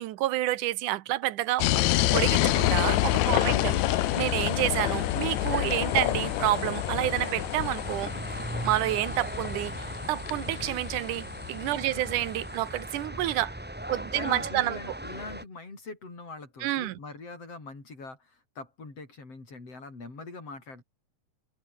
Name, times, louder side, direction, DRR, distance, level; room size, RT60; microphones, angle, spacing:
voice 1, 0.0-8.1 8.6-13.5 13.9-14.8 16.6-17.0, right 15 dB, 80° right, 2.4 m, -29 dB
sound 1, 1.6-12.3, left 18 dB, 80° left, 1.7 m, -28 dB
sound 2, 1.6-15.4, right 1 dB, 5° right, 1.6 m, -38 dB
voice 2, 3.3-4.0 11.7-12.2 13.0-13.4 14.1-20.8, left 3 dB, 45° left, 7.8 m, -43 dB
open air
omnidirectional pair, 3.7 m